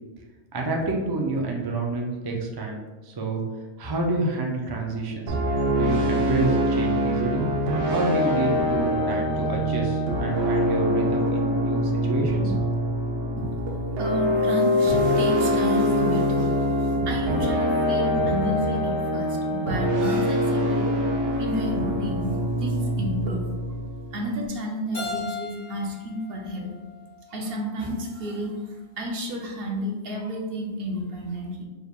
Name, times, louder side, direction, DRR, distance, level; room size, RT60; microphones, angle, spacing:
voice 1, 0.5-2.8 3.0-3.4 3.8-5.4 5.6-12.5, right 3 dB, 40° right, 0 dB, 0.3 m, -28 dB
sound 1, 5.3-24.4, equal, 90° right, 1.1 m, -24 dB
voice 2, 14.0-20.9 21.3-23.4 24.1-26.7 27.3-31.6, equal, 60° right, 0 dB, 0.9 m, -31 dB
Keyboard (musical), 24.9-27.8, left 4 dB, 45° left, 1.7 m, -37 dB
4.9 x 3.4 x 2.3 m, 1.3 s
omnidirectional pair, 1.2 m